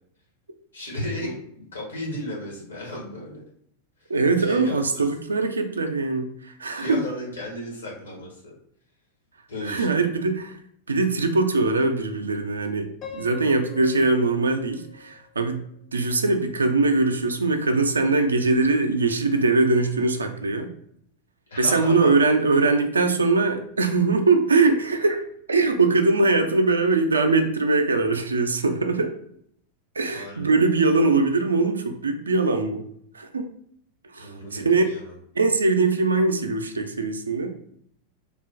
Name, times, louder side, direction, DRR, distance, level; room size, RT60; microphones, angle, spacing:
voice 1, 0.7-3.4 4.4-5.0 6.7-8.5 9.5-10.2 21.5-22.1 30.1-30.5 34.2-35.1, left 1 dB, 75° left, -4 dB, 1.1 m, -34 dB
voice 2, 4.1-7.0 9.6-10.6 10.9-15.6 15.9-20.7 21.6-29.1 30.0-32.8 33.1-33.5 34.1-34.8 35.4-37.6, right 3 dB, 75° right, 6 dB, 0.3 m, -22 dB
Piano, 13.0-16.0, left 6 dB, 30° left, 0.4 m, -44 dB
3.2 x 2.1 x 2.4 m, 0.68 s
figure-of-eight pair, 90°, 0 cm